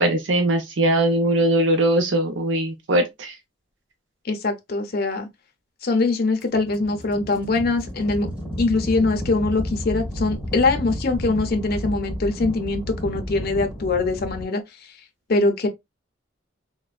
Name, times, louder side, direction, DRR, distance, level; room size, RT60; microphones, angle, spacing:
voice 1, 0.0-3.3, right 1 dB, 70° right, 0.6 m, -20 dB
voice 2, 4.2-5.3 5.8-8.3 8.6-14.6 15.3-15.7, left 3 dB, 50° left, 0.5 m, -22 dB
sound 1, 6.4-14.5, equal, 10° right, 1.6 m, -32 dB
3.3 x 2.1 x 2.3 m
head